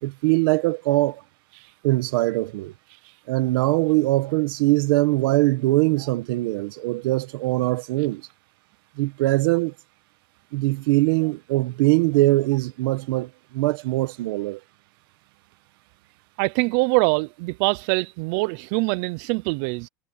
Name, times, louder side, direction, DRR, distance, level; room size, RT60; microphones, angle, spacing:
voice 1, 0.0-1.2 1.8-2.7 3.3-8.3 9.0-9.7 10.5-14.6, right 20 dB, 80° right, 1.3 m, -22 dB
voice 2, 16.4-19.9, right 28 dB, 60° right, 0.5 m, -23 dB
cardioid pair, 165°, 12 cm